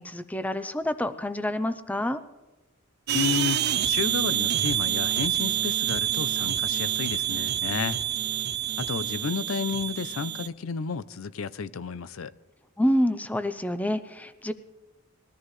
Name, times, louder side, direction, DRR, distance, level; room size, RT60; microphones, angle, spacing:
voice 1, 0.0-2.2 12.8-14.5, left 1 dB, 5° left, 0.5 m, -27 dB
voice 2, 3.1-8.0 8.8-12.3, left 5 dB, 90° left, 0.5 m, -31 dB
sound 1, 3.1-10.5, right 11 dB, 50° right, 0.4 m, -27 dB
21.0 x 13.5 x 3.2 m
head